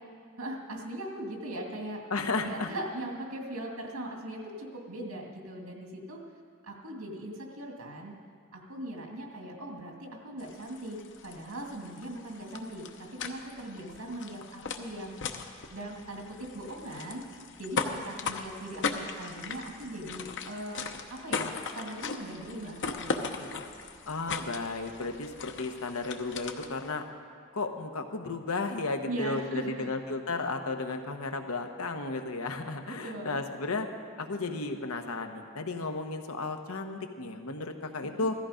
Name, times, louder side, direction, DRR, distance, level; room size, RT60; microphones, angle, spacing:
voice 1, 0.4-2.0 2.3-6.2 6.6-8.2 8.5-15.2 15.7-23.6 29.1-29.9 33.0-33.4 38.0-38.1, right 1 dB, 80° right, 0 dB, 2.4 m, -40 dB
voice 2, 2.1-2.7 24.1-27.0 27.5-33.9 34.2-38.3, left 3 dB, 85° left, 6 dB, 1.2 m, -34 dB
sound 1, 10.4-26.9, left 4 dB, 60° left, 0.9 m, -38 dB
16.0 x 14.0 x 5.1 m, 2.1 s
head